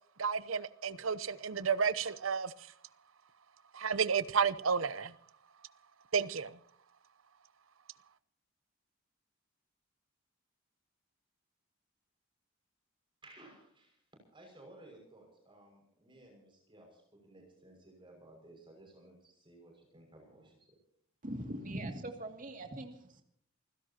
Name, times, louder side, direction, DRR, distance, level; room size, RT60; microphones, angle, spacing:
voice 1, 0.2-2.7 3.7-5.1 6.1-6.6, right 6 dB, 80° right, 0.8 m, -32 dB
voice 2, 13.2-14.0 14.3-20.6, right 1 dB, 25° right, 6.1 m, -57 dB
voice 3, 21.2-23.2, right 1 dB, 40° right, 2.4 m, -41 dB
28.5 x 16.5 x 2.9 m
head